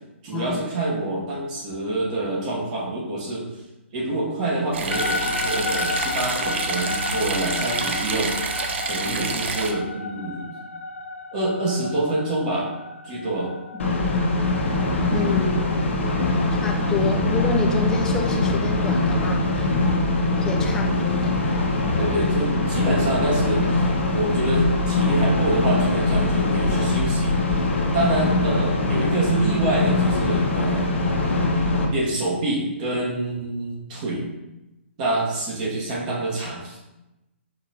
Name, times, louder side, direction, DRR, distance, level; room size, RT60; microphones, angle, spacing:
voice 1, 0.2-3.5 3.9-8.4 8.8-10.5 11.3-12.7 13.0-13.6 16.9-17.1 22.0-23.9 24.1-27.4 27.9-30.9 31.9-34.3 35.0-36.8, right 2 dB, 40° right, -4 dB, 1.0 m, -26 dB
sound 1, 4.7-9.7, right 4 dB, 65° right, 0.6 m, -28 dB
sound 2, 4.9-17.2, left 4 dB, 90° left, 0.4 m, -33 dB
sound 3, 13.8-31.9, left 2 dB, 75° left, 0.9 m, -22 dB
voice 2, 15.1-15.7 16.5-20.0 20.4-21.4, left 4 dB, 10° left, 1 dB, 0.4 m, -29 dB
5.1 x 3.7 x 2.8 m, 0.98 s
hypercardioid pair, 140°, 7 cm